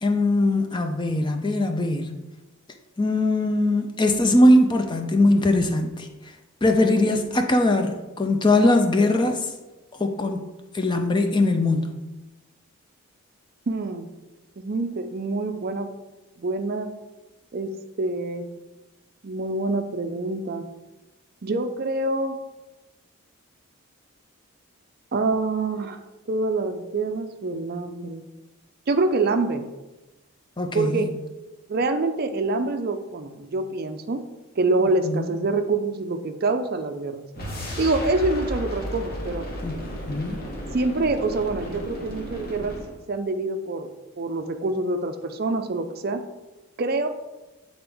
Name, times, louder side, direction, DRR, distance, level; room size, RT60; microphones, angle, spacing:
voice 1, 0.0-2.1 3.0-6.1 6.6-9.5 10.0-10.4 10.7-12.0 30.6-31.1 35.0-35.3 39.6-39.7 40.1-40.4, left 1 dB, 20° left, 5 dB, 0.5 m, -21 dB
voice 2, 13.7-14.1 14.6-15.9 16.4-16.9 17.5-17.7 18.0-18.5 19.2-20.6 21.4-22.4 25.1-26.0 26.3-28.2 28.9-29.6 30.7-31.1 31.7-34.2 34.6-37.2 37.8-39.4 40.7-42.8 43.1-43.9 44.2-46.2 46.8-47.1, right 3 dB, 45° right, 7 dB, 0.4 m, -26 dB
sound 1, 37.3-43.0, equal, 40° left, 1.4 m, -34 dB
8.6 x 3.9 x 3.4 m, 1.1 s
head